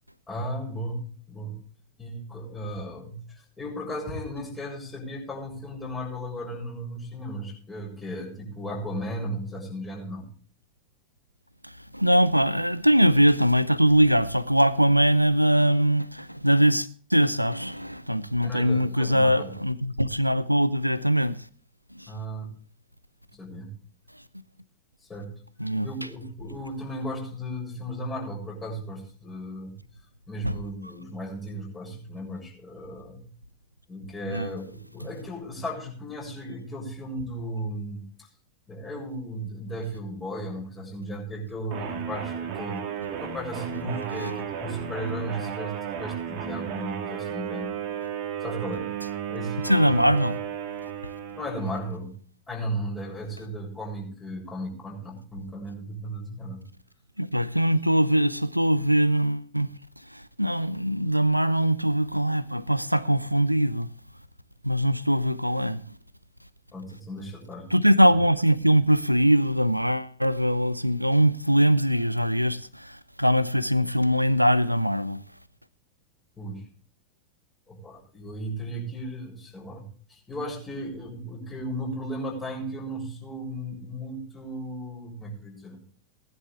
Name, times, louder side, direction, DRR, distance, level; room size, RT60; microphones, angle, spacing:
voice 1, 0.3-1.6 2.0-10.3 18.4-19.5 22.1-22.5 23.3-23.7 25.0-25.3 25.8-29.7 30.3-33.3 33.9-38.3 38.7-47.7 48.4-48.9 49.3-50.1 51.3-52.1 52.5-56.6 66.7-67.7 76.4-76.6 77.7-85.8, equal, 20° left, 7.2 m, -35 dB
voice 2, 11.6-21.5 21.9-22.1 25.6-25.9 30.4-30.6 34.3-34.5 44.2-44.3 49.6-50.4 51.0-51.1 57.2-59.7 60.0-63.9 64.6-66.0 67.7-75.2, equal, 90° right, 0.7 m, -22 dB
sound 1, 41.7-51.9, right 8 dB, 45° right, 2.2 m, -34 dB
19.5 x 11.0 x 3.4 m
figure-of-eight pair, 90°, 0 cm